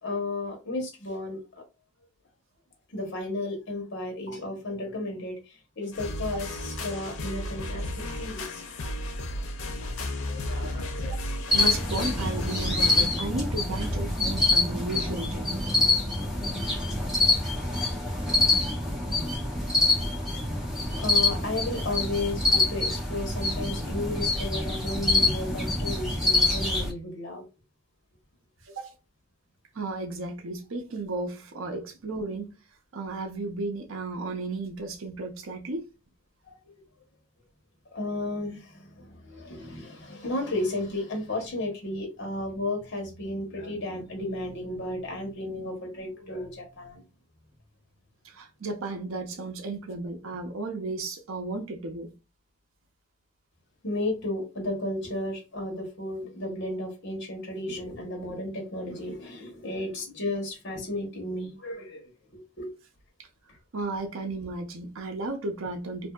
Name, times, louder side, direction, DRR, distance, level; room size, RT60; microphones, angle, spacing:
voice 1, 0.0-1.6 2.9-8.6 10.2-11.2 12.0-12.1 21.0-27.4 36.5-36.6 37.9-47.0 53.8-62.7, left 1 dB, 55° left, 1.0 m, -33 dB
sound 1, 5.9-13.1, left 1 dB, 85° left, 0.5 m, -34 dB
sound 2, 11.5-26.9, left 2 dB, ahead, 1.0 m, -26 dB
voice 2, 11.5-15.6 17.3-17.4 28.6-28.9 29.7-32.5 32.9-35.8 48.2-52.1 63.2-63.3 63.7-66.1, right 2 dB, 85° right, 0.6 m, -34 dB
2.7 x 2.6 x 2.2 m
head